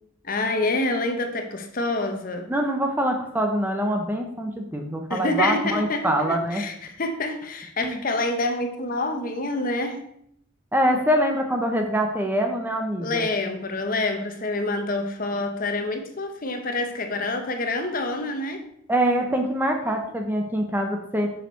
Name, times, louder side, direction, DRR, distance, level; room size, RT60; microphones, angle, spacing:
voice 1, 0.2-2.5 5.1-10.0 13.0-18.6, left 2 dB, 45° left, 0.8 m, -27 dB
voice 2, 2.5-6.6 7.8-8.0 10.7-13.3 18.9-21.3, right 1 dB, 10° right, 0.6 m, -24 dB
6.4 x 5.5 x 4.4 m
head